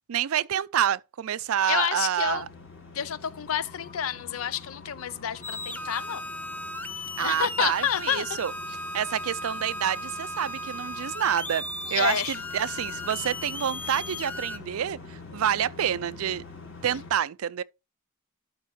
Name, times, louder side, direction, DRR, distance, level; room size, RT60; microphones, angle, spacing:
voice 1, 0.1-2.4 7.2-8.5 8.9-11.6 11.9-16.4 16.8-17.6, right 9 dB, 80° right, 0.4 m, -28 dB
voice 2, 1.7-2.5 2.9-6.2 7.2-8.3 11.9-12.4, left 8 dB, 75° left, 0.5 m, -29 dB
sound 1, 2.2-17.1, left 4 dB, 60° left, 3.5 m, -46 dB
sound 2, 3.6-13.5, left 6 dB, 35° left, 1.5 m, -52 dB
sound 3, 5.4-14.6, left 1 dB, 10° left, 0.4 m, -36 dB
12.0 x 4.7 x 3.1 m
head